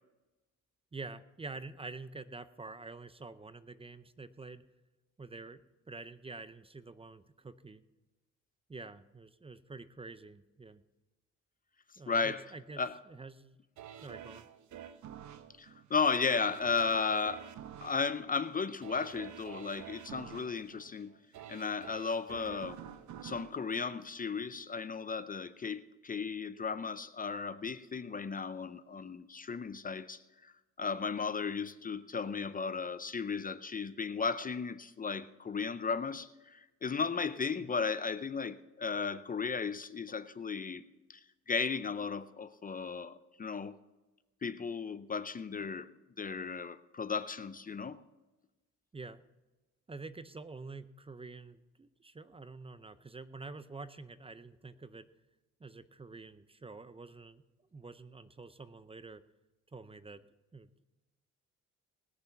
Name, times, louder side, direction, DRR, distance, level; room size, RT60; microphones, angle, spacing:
voice 1, 0.9-4.6 5.2-5.6 5.9-7.8 8.7-10.8 12.0-12.8 13.1-13.6 14.0-14.5 37.6-37.7 48.9-49.2 49.9-55.1 55.6-57.4 57.7-59.2 59.7-60.2 60.5-60.8, right 3 dB, 20° right, 13 dB, 0.6 m, -47 dB
voice 2, 12.1-12.4 12.8-13.0 15.6-17.4 17.8-21.1 21.5-22.8 23.2-30.5 30.8-40.8 41.1-43.8 44.4-45.9 46.2-48.0, left 5 dB, 30° left, 14 dB, 0.6 m, -35 dB
sound 1, 13.8-24.7 25.2-25.3, right 10 dB, 70° right, 1.0 m, -49 dB
20.0 x 6.9 x 5.8 m, 1.1 s
cardioid pair, 90°, 30 cm